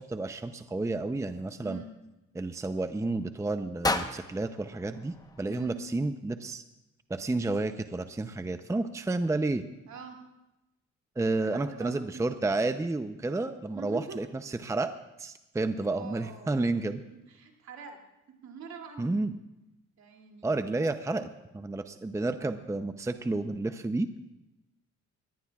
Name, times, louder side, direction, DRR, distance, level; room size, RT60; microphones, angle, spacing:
voice 1, 0.0-1.8 2.3-6.6 7.1-9.7 11.2-14.9 15.2-17.0 19.0-19.3 20.4-21.3 21.5-24.1, right 2 dB, 10° right, 9 dB, 0.6 m, -31 dB
sound 1, 3.8-6.0, left 2 dB, 10° left, 1.0 m, -34 dB
voice 2, 5.5-5.8 9.9-10.2 11.4-12.2 13.7-14.2 15.8-16.5 17.1-18.0 18.4-19.1 20.0-20.5, right 6 dB, 65° right, 1 dB, 2.8 m, -44 dB
21.5 x 18.0 x 2.4 m, 0.95 s
cardioid pair, 90°, 30 cm